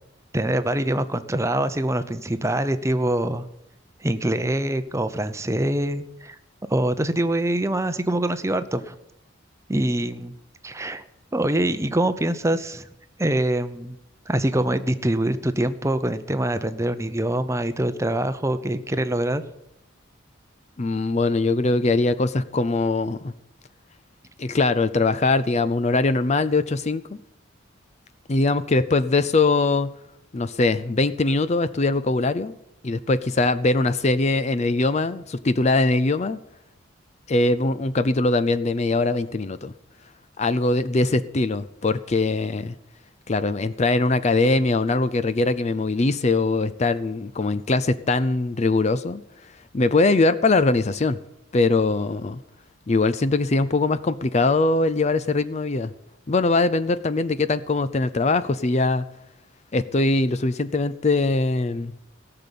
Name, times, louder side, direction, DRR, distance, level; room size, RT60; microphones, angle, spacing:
voice 1, 0.3-3.4 4.0-6.4 6.7-8.9 9.7-10.3 10.6-11.0 11.3-12.9 13.2-14.0 14.3-19.4, right 1 dB, 15° right, 10 dB, 0.7 m, -24 dB
voice 2, 20.8-23.3 24.4-27.0 28.3-29.9 30.3-32.6 32.8-36.4 37.3-39.7 40.4-42.7 43.3-49.2 49.7-51.2 51.5-52.4 52.9-55.9 56.3-59.1 59.7-61.9, left 3 dB, 35° left, 13 dB, 0.5 m, -22 dB
17.5 x 6.9 x 10.0 m, 0.81 s
head